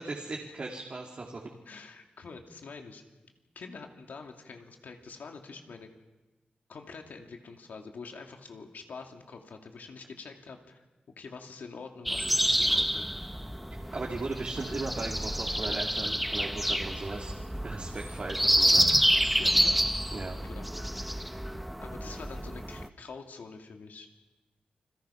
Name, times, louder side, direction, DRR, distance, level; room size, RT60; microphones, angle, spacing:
voice 1, 0.1-1.4 13.9-17.3 17.6-18.8 20.1-20.4, right 3 dB, 45° right, -1 dB, 2.6 m, -37 dB
voice 2, 1.7-3.0 3.5-5.9 6.7-10.8 11.2-13.1 19.3-19.8 20.4-20.7 21.8-24.1, left 4 dB, 80° left, 3 dB, 2.5 m, -45 dB
sound 1, 12.1-22.9, equal, ahead, 0.8 m, -28 dB
29.0 x 21.5 x 5.8 m, 1.1 s
wide cardioid pair, 110°, 3 cm